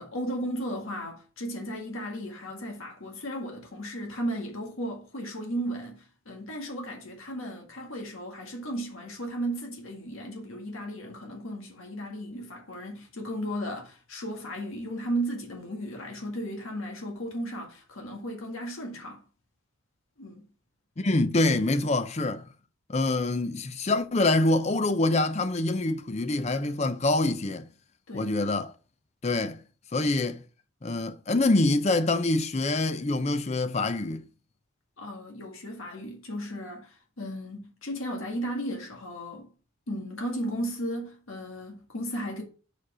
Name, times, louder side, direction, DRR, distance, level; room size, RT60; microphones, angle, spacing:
voice 1, 0.0-19.2 20.2-20.4 28.1-28.3 35.0-39.5 39.9-42.4, equal, 90° left, 1.8 m, -35 dB
voice 2, 21.0-22.4 22.9-27.7 28.1-28.7 29.2-29.6 29.9-30.4 30.8-34.2, left 2 dB, 35° left, 0.5 m, -25 dB
6.3 x 5.0 x 4.9 m
head